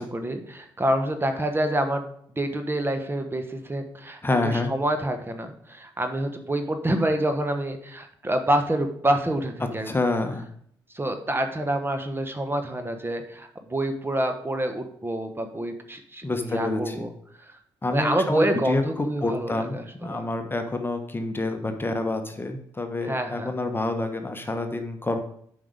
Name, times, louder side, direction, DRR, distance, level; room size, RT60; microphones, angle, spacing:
voice 1, 0.1-2.1 2.4-9.9 10.9-17.1 17.4-17.5 17.9-20.2 23.0-23.5, right 1 dB, 20° right, 7 dB, 1.3 m, -27 dB
voice 2, 4.2-4.7 9.8-10.5 16.2-17.1 17.8-25.2, left 2 dB, 20° left, 6 dB, 1.2 m, -28 dB
7.5 x 5.5 x 5.1 m, 0.66 s
hypercardioid pair, 45°, 11 cm